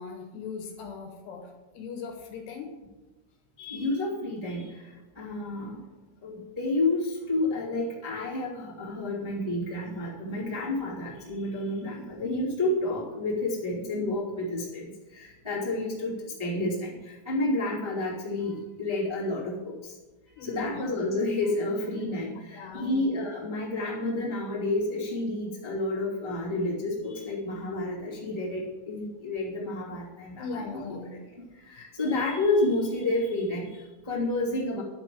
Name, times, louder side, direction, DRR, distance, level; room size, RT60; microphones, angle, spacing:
voice 1, 0.0-2.7 20.4-20.8 22.5-23.1 30.4-31.1, left 5 dB, 70° left, 2 dB, 2.9 m, -39 dB
voice 2, 3.6-5.8 6.2-19.9 20.4-31.2 31.6-34.8, left 2 dB, 30° right, -8 dB, 0.5 m, -30 dB
11.0 x 5.1 x 7.6 m, 1.2 s
omnidirectional pair, 5.7 m